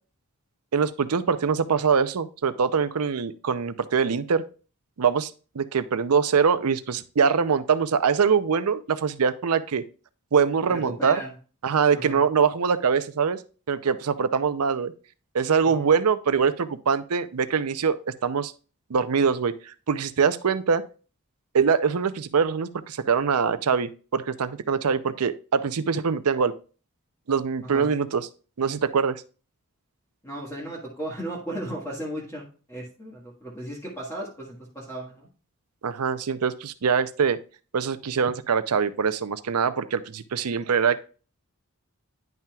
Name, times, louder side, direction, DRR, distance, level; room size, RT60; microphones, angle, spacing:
voice 1, 0.7-4.4 5.0-9.8 10.3-11.2 11.6-13.4 13.7-14.9 15.3-18.5 18.9-20.8 21.5-26.5 27.3-28.3 28.6-29.2 35.8-37.4 37.7-41.0, right 6 dB, 85° right, 13 dB, 0.6 m, -23 dB
voice 2, 10.7-11.3 11.9-12.2 15.6-15.9 27.6-27.9 30.2-35.3, right 1 dB, 15° left, -5 dB, 1.6 m, -36 dB
10.5 x 5.7 x 2.3 m, 0.36 s
head